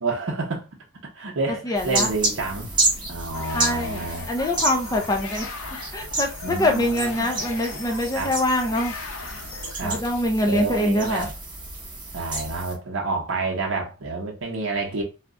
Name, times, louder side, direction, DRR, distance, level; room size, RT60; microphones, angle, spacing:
voice 1, 0.0-0.7 1.1-2.7 3.1-4.3 6.4-7.3 8.1-8.3 9.7-10.0 10.4-11.3 12.1-15.0, right 3 dB, 70° right, 0.8 m, -29 dB
voice 2, 1.6-2.1 3.5-5.5 5.9-8.9 9.8-11.3, left 1 dB, 15° left, 0.4 m, -24 dB
sound 1, 1.8-12.7, right 2 dB, 20° right, 0.8 m, -30 dB
sound 2, 3.3-9.7, left 5 dB, 80° left, 0.5 m, -38 dB
2.3 x 2.0 x 3.5 m
head